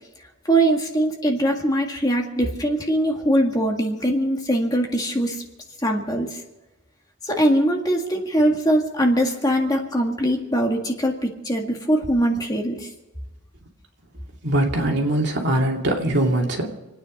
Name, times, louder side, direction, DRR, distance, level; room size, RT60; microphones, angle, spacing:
voice 1, 0.5-5.4 5.8-6.4 7.2-12.9, right 1 dB, 20° left, 1 dB, 1.9 m, -22 dB
voice 2, 14.4-16.7, right 1 dB, 55° right, 0 dB, 2.7 m, -22 dB
28.0 x 9.6 x 5.3 m, 1.1 s
head